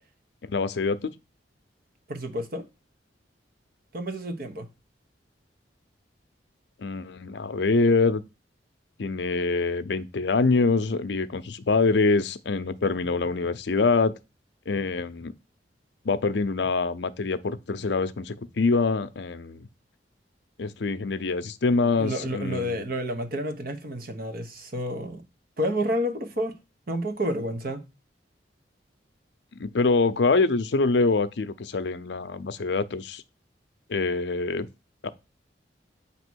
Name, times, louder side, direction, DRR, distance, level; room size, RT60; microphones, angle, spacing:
voice 1, 0.4-1.1 6.8-8.2 9.0-14.1 14.7-15.3 16.0-19.7 20.6-22.9 29.5-33.2 33.9-34.7 35.0-35.1, left 3 dB, 70° left, 0.6 m, -25 dB
voice 2, 2.1-2.7 3.9-4.7 21.8-25.2 25.6-26.5 26.9-27.8, equal, 55° right, 1.0 m, -30 dB
8.2 x 2.9 x 6.2 m
head